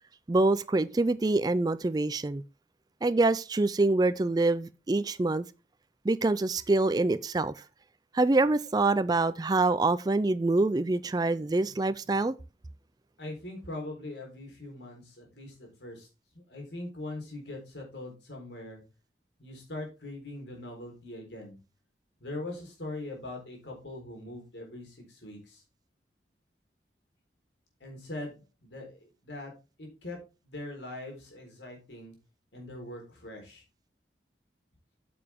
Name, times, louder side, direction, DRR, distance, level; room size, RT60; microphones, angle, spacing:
voice 1, 0.3-2.4 3.0-5.4 6.0-7.5 8.1-12.4, right 2 dB, 20° right, 0.4 m, -25 dB
voice 2, 13.2-16.1 16.3-18.8 19.4-21.6 22.2-25.6 27.8-29.5 29.8-30.2 30.4-32.1 32.5-33.6, left 2 dB, 85° left, 4.0 m, -41 dB
8.9 x 6.8 x 3.6 m
head